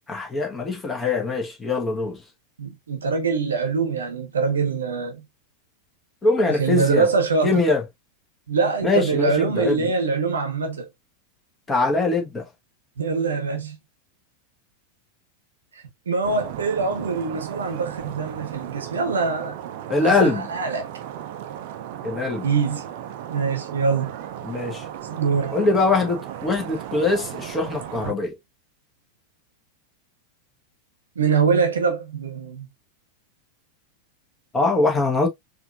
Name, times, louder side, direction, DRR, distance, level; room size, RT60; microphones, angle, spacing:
voice 1, 0.1-2.2 6.2-7.1 7.4-7.8 8.8-9.9 11.7-12.5 19.9-20.5 22.0-22.4 24.4-24.8 25.5-28.4 34.5-35.3, left 3 dB, 15° left, 1.2 m, -22 dB
voice 2, 2.6-5.2 6.5-7.6 8.5-10.9 13.0-13.8 15.7-19.6 20.0-20.9 22.4-22.9 23.3-24.1 25.1-25.6 31.1-32.7, right 5 dB, 70° right, 0.9 m, -24 dB
sound 1, 16.2-28.1, right 10 dB, 50° right, 0.5 m, -35 dB
4.3 x 2.6 x 2.4 m
figure-of-eight pair, 90°, 0 cm